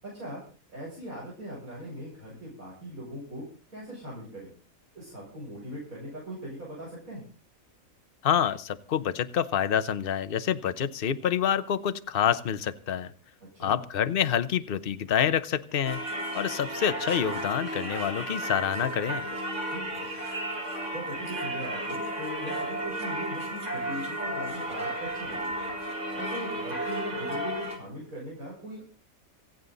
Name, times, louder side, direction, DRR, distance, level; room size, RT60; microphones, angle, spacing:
voice 1, 0.0-0.4 0.7-3.4 3.7-4.5 4.9-7.2 13.4-13.8 19.7-20.1 20.9-25.5 26.2-28.8, right 1 dB, 80° right, -6 dB, 7.2 m, -40 dB
voice 2, 8.2-13.1 13.6-16.0 16.3-19.2, left 9 dB, 45° left, 13 dB, 1.0 m, -27 dB
Singing / Church bell, 15.8-27.8, right 1 dB, 60° right, 3.6 m, -33 dB
27.5 x 9.2 x 4.0 m, 0.35 s
omnidirectional pair, 1.5 m